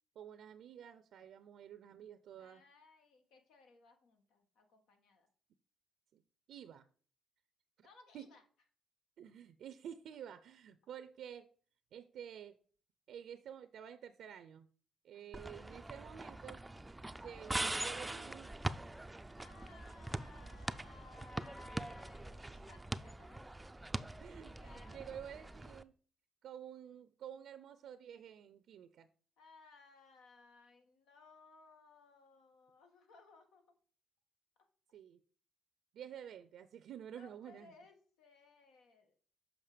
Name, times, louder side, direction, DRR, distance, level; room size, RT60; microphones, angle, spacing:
voice 1, 0.2-2.6 6.1-6.2 6.5-6.9 7.8-7.9 8.1-8.3 9.2-11.5 11.9-12.6 13.1-14.7 15.0-16.7 17.1-18.5 24.2-25.9 26.4-29.1 34.9-35.2 35.9-37.7, right 9 dB, 75° right, 0.5 m, -50 dB
voice 2, 2.4-5.3 7.8-8.4 15.1-15.5 19.3-23.4 24.1-24.3 24.6-25.4 29.4-33.6 37.1-39.2, left 3 dB, 85° left, 1.6 m, -61 dB
sound 1, 15.3-25.8, right 2 dB, 10° right, 0.4 m, -43 dB
7.2 x 5.3 x 5.0 m
cardioid pair, 90°, 0 cm